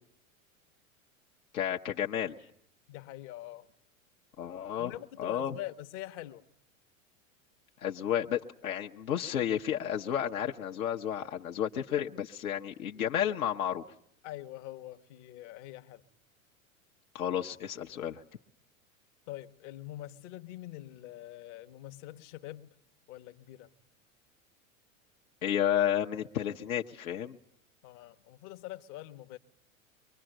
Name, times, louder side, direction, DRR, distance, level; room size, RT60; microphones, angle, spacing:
voice 1, 1.5-2.4 4.4-4.9 5.2-5.5 7.8-13.8 17.1-18.2 25.4-27.4, left 10 dB, 80° left, 1.1 m, -31 dB
voice 2, 2.9-3.7 4.8-6.4 14.2-16.0 19.3-22.7 23.1-23.7 27.8-29.4, left 15 dB, 60° left, 1.2 m, -44 dB
24.0 x 22.0 x 8.9 m
hypercardioid pair, 100°, 41 cm